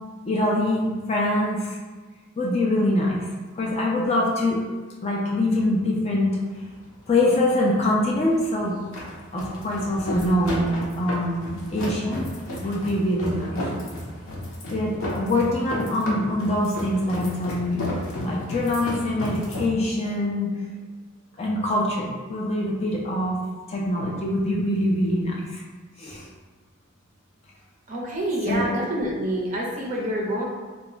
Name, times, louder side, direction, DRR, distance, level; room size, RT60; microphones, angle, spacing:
voice 1, 0.3-1.8 2.4-3.3 3.5-4.6 5.0-6.4 7.1-8.8 9.3-12.2 12.6-13.6 14.7-17.9 18.2-20.5 21.4-23.4 23.7-25.6 26.0-26.2 28.5-28.7, left 1 dB, 30° left, -3 dB, 0.4 m, -24 dB
sound 1, 6.3-19.7, left 1 dB, 80° left, 0.6 m, -33 dB
voice 2, 27.9-30.4, right 1 dB, 40° right, -3 dB, 0.6 m, -27 dB
2.2 x 2.1 x 3.8 m, 1.4 s
head